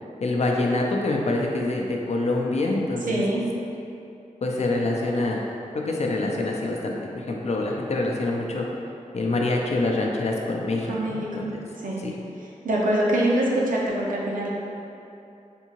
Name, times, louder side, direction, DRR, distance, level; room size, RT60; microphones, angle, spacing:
voice 1, 0.2-3.2 4.4-5.4 5.7-8.7 9.1-11.6 12.0-12.1, left 2 dB, 55° left, -1 dB, 0.4 m, -25 dB
voice 2, 3.1-3.4 10.9-11.5 11.8-12.0 12.6-14.5, right 1 dB, 80° right, -4 dB, 0.6 m, -24 dB
3.5 x 2.7 x 2.9 m, 2.7 s
wide cardioid pair, 75°, 14 cm